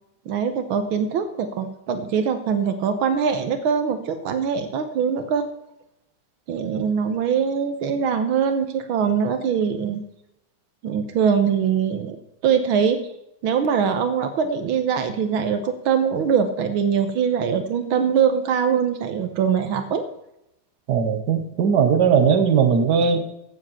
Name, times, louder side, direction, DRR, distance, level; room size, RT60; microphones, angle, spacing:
voice 1, 0.3-5.5 6.5-10.0 10.8-13.0 13.4-20.0, right 7 dB, 85° right, 8 dB, 1.8 m, -22 dB
voice 2, 20.9-23.2, right 6 dB, 55° right, 7 dB, 1.9 m, -18 dB
15.5 x 7.5 x 5.7 m, 0.82 s
omnidirectional pair, 2.2 m